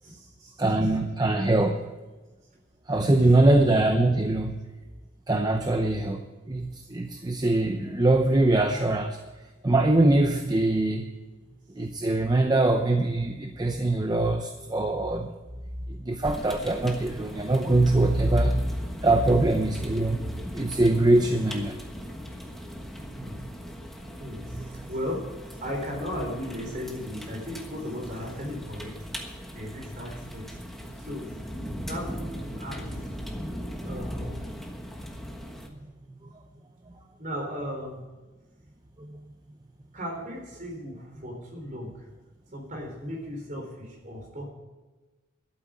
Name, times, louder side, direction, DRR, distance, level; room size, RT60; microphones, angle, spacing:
voice 1, 0.0-0.6 3.2-3.4 23.2-23.4 24.2-25.2 25.6-29.0 29.5-30.5 31.0-31.4 31.9-32.9 33.8-34.4 37.2-38.0 39.9-42.1 42.5-44.5, equal, 40° right, 1 dB, 4.0 m, -36 dB
voice 2, 0.6-1.8 2.9-4.6 5.3-9.2 9.6-11.0 11.8-15.3 15.9-18.7 19.0-21.8 23.3-23.5 24.5-24.7 39.0-39.2, right 2 dB, 20° right, 5 dB, 0.7 m, -23 dB
sound 1, 16.2-35.7, equal, ahead, 1.3 m, -39 dB
12.0 x 8.8 x 7.4 m, 1.2 s
head